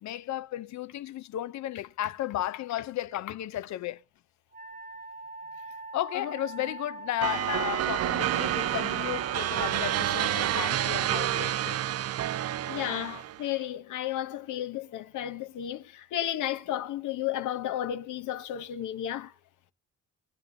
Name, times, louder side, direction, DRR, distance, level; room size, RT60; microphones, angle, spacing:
voice 1, 0.0-4.0 5.9-11.8, left 13 dB, 65° left, 0.6 m, -34 dB
Wind instrument woodwind instrument, 4.5-10.1, right 3 dB, 30° right, 1.1 m, -43 dB
voice 2, 6.1-6.6 12.7-19.3, left 11 dB, 80° left, 1.1 m, -33 dB
sound 1, 7.2-13.4, right 12 dB, 55° right, 0.5 m, -29 dB
22.5 x 9.1 x 2.7 m
cardioid pair, 90°, 30 cm